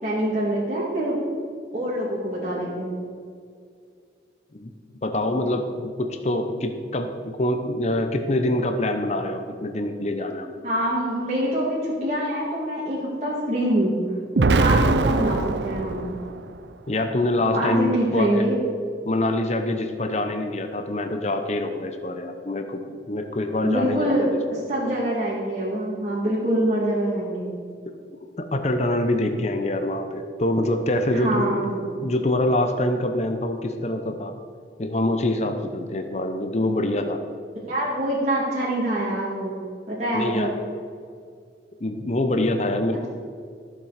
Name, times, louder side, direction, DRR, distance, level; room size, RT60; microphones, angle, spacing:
voice 1, 0.0-1.2 1.7-2.9 10.6-14.0 14.4-16.1 17.5-18.6 23.6-27.5 31.1-31.8 37.5-39.6 39.9-40.5 42.9-43.1, right 1 dB, 40° right, -6 dB, 2.1 m, -25 dB
voice 2, 5.0-10.6 14.7-14.9 16.9-18.5 19.0-22.8 23.1-24.4 27.9-28.0 28.4-31.6 32.0-34.3 34.8-37.2 40.1-40.5 41.8-43.0, left 1 dB, 40° left, 6 dB, 0.8 m, -25 dB
Explosion, 14.4-16.5, right 3 dB, 80° right, 0.5 m, -22 dB
14.5 x 7.4 x 5.0 m, 2.2 s
head